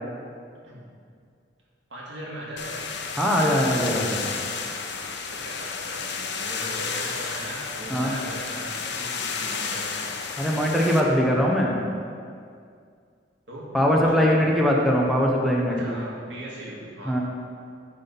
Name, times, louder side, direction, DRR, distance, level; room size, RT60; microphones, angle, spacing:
voice 1, 1.9-2.8 5.3-9.9 13.5-13.7 14.0-14.6 15.7-17.2, right 1 dB, 80° right, -5 dB, 2.0 m, -38 dB
sound 1, 2.6-11.0, left 5 dB, 70° left, 0.7 m, -32 dB
voice 2, 3.2-4.3 7.9-8.1 10.4-11.8 13.7-16.0 17.1-17.2, equal, ahead, -2 dB, 0.8 m, -21 dB
11.0 x 4.2 x 5.3 m, 2.3 s
head